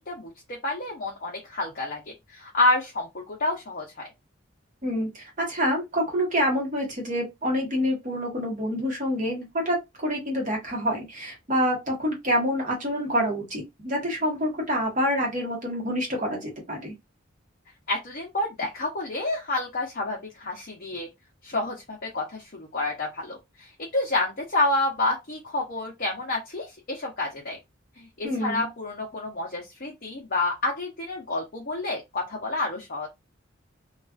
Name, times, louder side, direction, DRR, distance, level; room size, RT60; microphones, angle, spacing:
voice 1, 0.1-2.0 2.3-4.1 17.9-21.1 21.4-27.6 28.0-33.1, left 2 dB, 45° left, 0.7 m, -29 dB
voice 2, 4.8-16.9 28.2-28.7, equal, 40° right, 1.0 m, -27 dB
2.4 x 2.4 x 2.3 m
head